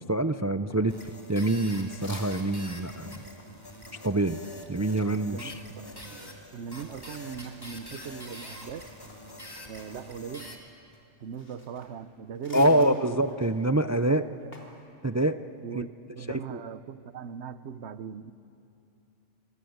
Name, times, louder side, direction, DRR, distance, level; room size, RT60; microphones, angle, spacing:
voice 1, 0.1-1.0 1.3-3.1 4.0-4.4 4.7-5.6 12.5-14.2 15.0-15.4 15.7-15.8 16.5-16.6, right 1 dB, 25° right, 10 dB, 0.3 m, -25 dB
sound 1, 0.7-2.7 3.0-8.2 8.6-14.8, left 1 dB, 75° left, 4.0 m, -52 dB
sound 2, 0.9-10.6, left 1 dB, 20° left, 2.7 m, -45 dB
voice 2, 5.3-6.2 6.5-8.9 9.7-10.6 11.2-13.2 14.1-14.6 15.6-18.3, right 7 dB, 70° right, 14 dB, 1.1 m, -39 dB
26.0 x 25.5 x 8.0 m, 2.6 s
omnidirectional pair, 1.2 m